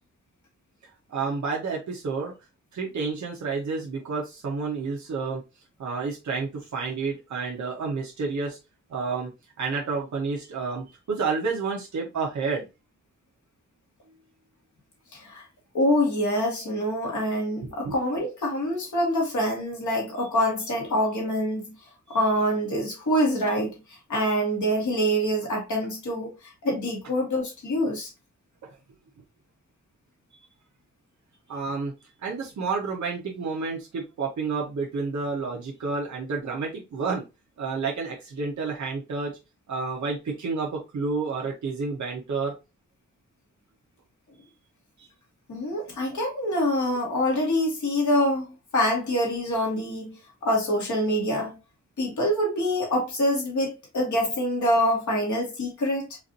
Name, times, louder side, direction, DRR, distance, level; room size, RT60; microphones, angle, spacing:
voice 1, 1.1-2.3 2.7-5.4 5.8-8.6 8.9-9.3 9.6-12.6 17.6-17.9 31.5-31.9 32.2-37.2 37.6-39.3 39.7-42.5 45.0-45.1, right 4 dB, 75° right, 1.0 m, -30 dB
voice 2, 15.1-15.4 15.7-21.6 22.1-23.8 24.1-26.3 26.6-28.1 45.5-48.5 48.7-50.1 50.4-51.6 52.0-56.2, equal, 80° left, 1.8 m, -25 dB
4.6 x 2.6 x 2.7 m
wide cardioid pair, 180°, 29 cm